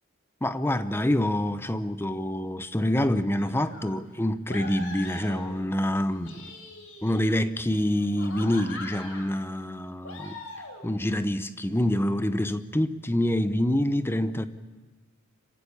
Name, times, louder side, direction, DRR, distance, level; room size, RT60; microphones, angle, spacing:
voice 1, 0.4-6.5 7.0-10.4 10.8-14.5, left 1 dB, 10° left, 0.8 m, -26 dB
sound 1, 3.4-3.9 4.5-5.7 6.1-7.4 8.0-9.3 10.0-10.9, left 2 dB, 85° left, 4.3 m, -42 dB
25.5 x 15.0 x 8.6 m
head